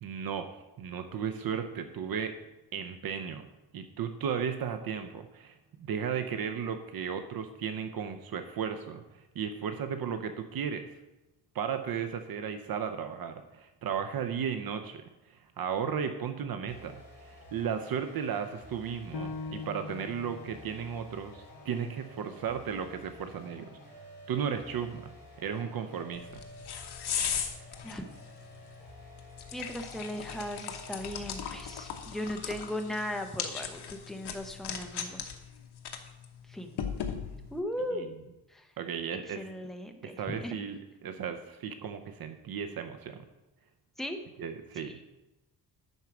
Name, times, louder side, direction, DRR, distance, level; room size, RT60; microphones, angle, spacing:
voice 1, 0.0-2.3 2.7-3.5 3.7-9.0 9.3-10.9 11.5-15.0 15.3-23.7 24.3-26.4 37.3-37.5 37.9-38.1 38.8-39.4 40.0-43.2 44.4-45.0, right 7 dB, 65° right, 7 dB, 0.7 m, -35 dB
sound 1, 16.7-32.2, equal, 25° left, 2.9 m, -52 dB
Piano, 19.1-24.3 24.8-24.9 25.5-26.0, left 4 dB, 60° left, 0.8 m, -45 dB
sound 2, 26.1-37.6, left 7 dB, 80° left, 1.1 m, -39 dB
voice 2, 29.5-35.2 36.5-36.8 37.5-38.1 38.5-38.7 39.4-40.6 44.0-44.2 44.8-44.9, left 1 dB, ahead, 4 dB, 0.8 m, -37 dB
11.0 x 4.6 x 6.0 m, 0.99 s
wide cardioid pair, 145°, 39 cm